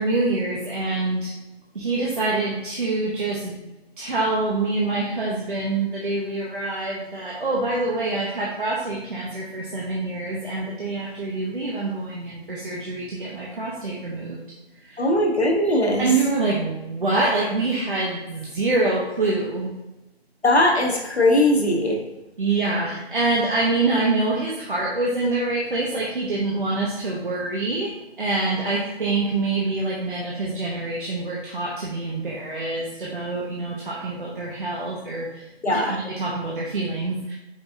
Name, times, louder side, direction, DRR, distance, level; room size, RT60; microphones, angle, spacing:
voice 1, 0.0-1.3 1.7-3.6 4.0-14.4 14.8-15.1 16.0-19.7 22.4-37.3, right 3 dB, 50° right, -5 dB, 0.9 m, -25 dB
voice 2, 15.0-16.0 20.4-22.0 35.6-36.0, left 1 dB, 80° left, 1 dB, 1.1 m, -19 dB
5.1 x 3.6 x 2.6 m, 1.0 s
figure-of-eight pair, 160°, 32 cm